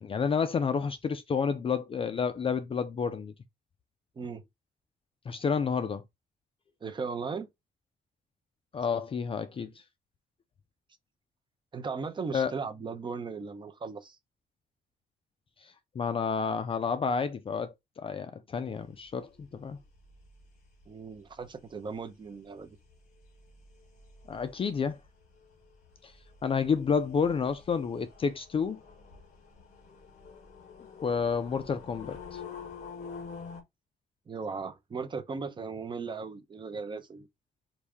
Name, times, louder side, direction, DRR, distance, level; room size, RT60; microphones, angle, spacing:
voice 1, 0.0-3.3 5.3-6.0 8.7-9.7 12.3-12.5 16.0-19.8 24.3-25.0 26.0-26.1 26.4-28.8 31.0-32.4, left 6 dB, 35° left, 0.4 m, -30 dB
voice 2, 6.8-7.5 11.7-14.2 20.9-22.8 34.3-37.3, right 5 dB, 30° right, 0.7 m, -37 dB
sound 1, 18.8-33.6, left 5 dB, 50° left, 1.8 m, -49 dB
4.8 x 2.7 x 3.4 m
wide cardioid pair, 155°, 16 cm